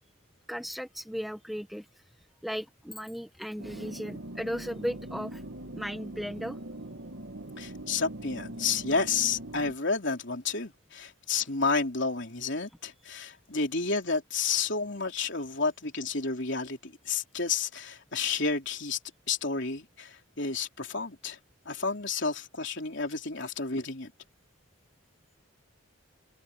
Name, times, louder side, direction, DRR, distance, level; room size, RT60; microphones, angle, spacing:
voice 1, 0.5-2.0 2.4-5.4 5.8-6.6, equal, ahead, 1.3 m, -36 dB
sound 1, 3.6-9.7, right 1 dB, 60° right, 1.6 m, -41 dB
voice 2, 7.6-19.0 19.3-21.4 21.7-24.1, left 4 dB, 55° left, 3.9 m, -31 dB
head